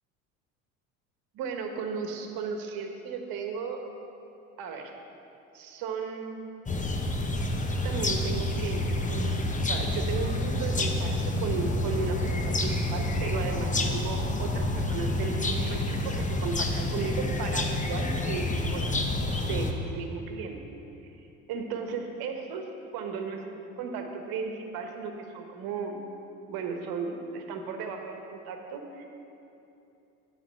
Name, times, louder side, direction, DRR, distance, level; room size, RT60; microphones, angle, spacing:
voice 1, 1.3-3.9 4.6-4.9 5.5-6.4 7.7-8.8 9.1-19.0 19.4-20.6 21.5-22.7 22.9-26.0 26.5-29.1, right 5 dB, 55° right, 4 dB, 1.4 m, -35 dB
sound 1, 6.7-19.7, left 1 dB, 20° left, 0.9 m, -28 dB
9.1 x 5.1 x 7.7 m, 2.9 s
hypercardioid pair, 70°, 43 cm